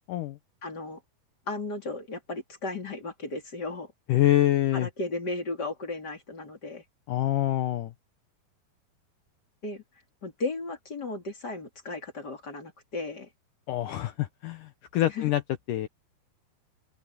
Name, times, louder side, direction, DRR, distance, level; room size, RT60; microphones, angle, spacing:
voice 1, 0.6-1.0 1.5-3.9 4.7-6.8 9.6-9.8 10.2-13.3 15.1-15.2, left 2 dB, 30° left, 3.2 m, -35 dB
voice 2, 4.1-4.9 7.1-7.9 13.7-15.4 15.7-15.9, left 14 dB, 70° left, 2.1 m, -25 dB
open air
omnidirectional pair, 4.5 m